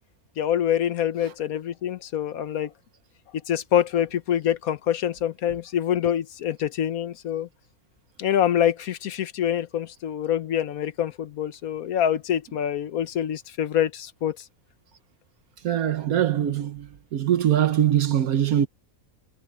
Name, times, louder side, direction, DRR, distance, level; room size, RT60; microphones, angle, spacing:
voice 1, 0.4-2.7 3.5-7.5 8.2-14.4, left 10 dB, 80° left, 1.4 m, -25 dB
voice 2, 15.6-18.7, right 10 dB, 80° right, 1.4 m, -22 dB
omnidirectional pair, 1.5 m